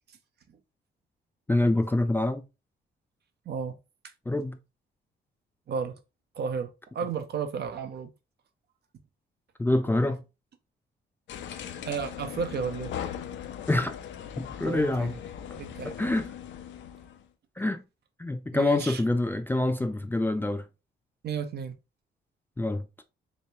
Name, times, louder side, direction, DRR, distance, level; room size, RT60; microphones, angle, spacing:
voice 1, 1.5-2.4 4.3-4.6 9.6-10.2 13.7-14.0 14.4-15.1 15.8-16.3 17.6-17.8 18.2-20.7 22.6-22.8, left 2 dB, 10° left, 0.4 m, -26 dB
voice 2, 6.4-8.1 11.8-12.9 14.7-15.2 15.6-16.1 18.5-19.0 21.2-21.7, right 6 dB, 55° right, 0.7 m, -33 dB
sound 1, 11.3-17.3, left 9 dB, 70° left, 0.5 m, -39 dB
3.3 x 3.1 x 2.7 m
cardioid pair, 90°, 20 cm